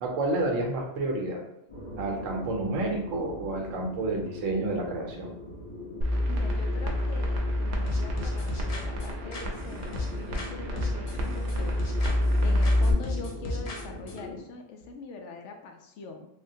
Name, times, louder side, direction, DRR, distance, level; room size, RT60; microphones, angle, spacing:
voice 1, 0.0-1.4 2.0-5.3, right 2 dB, 85° right, 1 dB, 1.0 m, -30 dB
sound 1, 1.7-14.4, left 1 dB, 30° left, 0.9 m, -41 dB
sound 2, 6.0-12.9, left 1 dB, 65° right, 0.8 m, -28 dB
voice 2, 6.3-11.7 12.4-16.3, left 4 dB, 70° left, 4 dB, 0.9 m, -43 dB
sound 3, 7.9-10.5 10.8-12.4 12.6-14.2, left 2 dB, 50° left, 0.4 m, -35 dB
3.4 x 2.2 x 2.6 m, 0.79 s
omnidirectional pair, 1.3 m